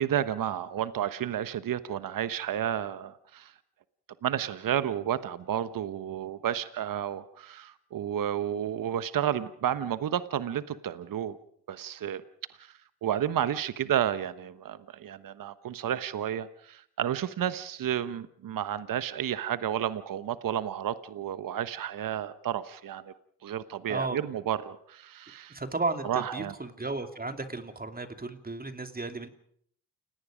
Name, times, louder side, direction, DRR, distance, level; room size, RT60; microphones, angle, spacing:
voice 1, 0.0-3.5 4.2-11.4 11.7-12.2 12.6-23.1 23.4-25.6 26.1-26.5, right 10 dB, 55° right, 13 dB, 1.2 m, -31 dB
voice 2, 23.9-24.2 25.5-29.3, right 3 dB, 20° right, 7 dB, 2.7 m, -34 dB
29.0 x 18.0 x 5.1 m, 0.65 s
supercardioid pair, 55°, 41 cm